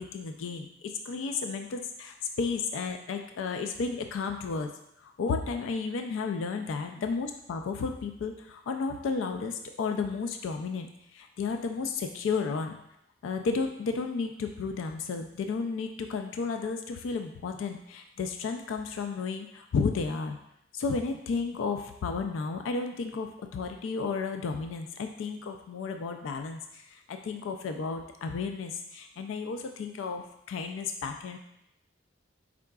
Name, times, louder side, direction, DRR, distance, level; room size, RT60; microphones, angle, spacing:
voice 1, 0.0-4.7 5.0-12.8 13.2-20.4 20.7-31.4, left 4 dB, 85° left, 6 dB, 0.3 m, -33 dB
4.7 x 3.6 x 2.3 m, 0.79 s
head